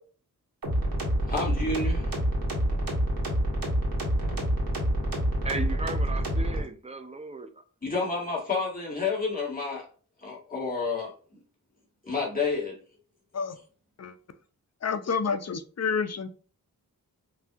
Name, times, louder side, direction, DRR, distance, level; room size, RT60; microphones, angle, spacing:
sound 1, 0.6-6.6, right 1 dB, 70° right, 1.8 m, -27 dB
voice 1, 1.2-2.1 7.8-9.9 10.2-11.1 12.0-12.8, left 4 dB, 25° left, 2.2 m, -30 dB
voice 2, 5.4-7.6, right 2 dB, 20° right, 0.7 m, -36 dB
voice 3, 14.8-16.3, left 5 dB, 45° left, 0.6 m, -29 dB
5.9 x 2.7 x 2.5 m
cardioid pair, 65°, 36 cm